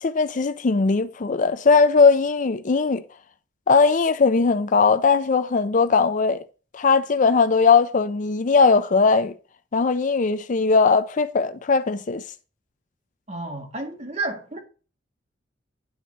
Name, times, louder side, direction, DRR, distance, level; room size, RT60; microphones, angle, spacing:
voice 1, 0.0-3.0 3.7-6.4 6.7-9.3 9.7-12.2, left 4 dB, 45° left, 0.5 m, -19 dB
voice 2, 13.3-14.6, right 2 dB, 35° right, 1.9 m, -31 dB
10.0 x 4.0 x 6.1 m
head